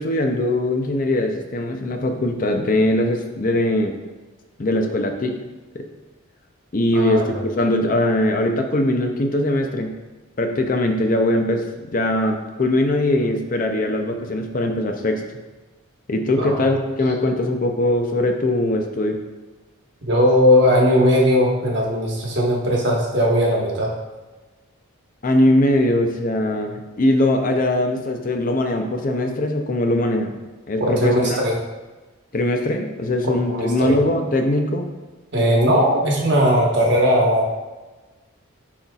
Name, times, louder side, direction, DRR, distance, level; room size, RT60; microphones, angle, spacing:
voice 1, 0.0-4.0 4.6-5.4 5.7-5.8 6.7-10.0 10.4-15.2 16.1-19.2 25.2-30.3 30.7-31.4 32.3-34.9, left 1 dB, 40° left, 4 dB, 0.5 m, -21 dB
voice 2, 20.0-23.9 30.8-31.5 33.5-33.9 35.3-37.5, equal, 50° right, -2 dB, 1.2 m, -18 dB
10.0 x 4.0 x 2.3 m, 1.2 s
head